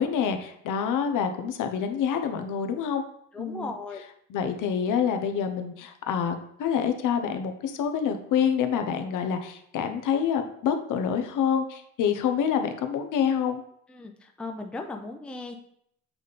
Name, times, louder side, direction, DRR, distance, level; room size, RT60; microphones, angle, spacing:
voice 1, 0.0-3.0 3.4-3.7 4.3-13.6, left 7 dB, 70° left, 7 dB, 0.8 m, -27 dB
voice 2, 3.3-4.0 13.9-15.6, left 3 dB, 5° left, 3 dB, 0.4 m, -37 dB
7.3 x 3.4 x 4.1 m, 0.71 s
cardioid pair, 160°, 32 cm